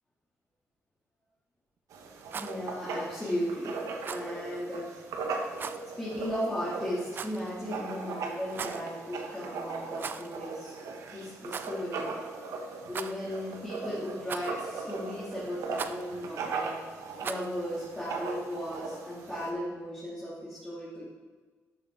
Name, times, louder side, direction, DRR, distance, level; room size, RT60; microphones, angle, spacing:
Writing, 1.9-19.5, right 4 dB, 85° right, 1.3 m, -39 dB
Rattle, 2.2-2.6 4.0-4.3 5.6-5.8 7.1-7.5 8.4-8.9 9.9-10.4 10.6-10.7 11.5-11.7 12.9-13.4 14.3-14.7 15.7-16.0 17.2-17.5, right 6 dB, 40° right, 0.5 m, -38 dB
voice 1, 2.3-3.7 4.0-4.9 6.0-10.7 11.1-12.1 12.9-16.8 17.2-21.1, equal, 15° left, -10 dB, 2.8 m, -36 dB
12.0 x 8.4 x 4.0 m, 1.4 s
cardioid pair, 135°, 5 cm